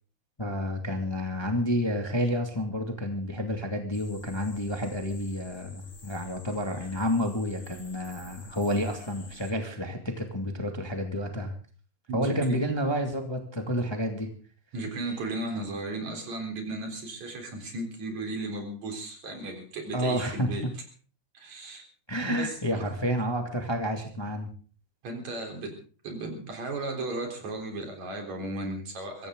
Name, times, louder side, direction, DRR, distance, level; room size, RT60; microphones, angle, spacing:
voice 1, 0.4-11.5 12.1-14.3 19.9-20.7 22.1-24.5, equal, 10° left, 4 dB, 1.9 m, -30 dB
sound 1, 3.9-9.5, left 3 dB, 30° left, 2.3 m, -50 dB
voice 2, 12.1-12.6 14.7-20.7 21.3-21.8 22.2-22.9 25.0-25.8 26.0-29.3, right 2 dB, 70° right, 3 dB, 5.2 m, -35 dB
23.0 x 16.0 x 3.9 m, 0.41 s
omnidirectional pair, 3.3 m